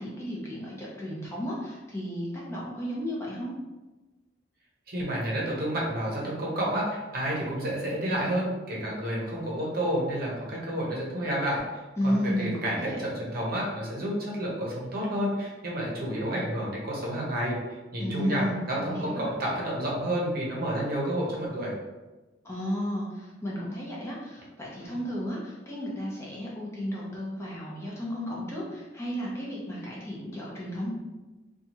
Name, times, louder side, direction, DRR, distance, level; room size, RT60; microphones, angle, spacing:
voice 1, 0.0-3.5 12.0-13.0 18.0-18.6 18.9-19.3 22.4-30.9, equal, 15° left, -6 dB, 0.6 m, -33 dB
voice 2, 4.9-11.6 12.0-17.6 17.9-21.7 24.8-25.0, right 1 dB, 55° right, -4 dB, 0.8 m, -30 dB
2.8 x 2.3 x 2.8 m, 1.2 s
head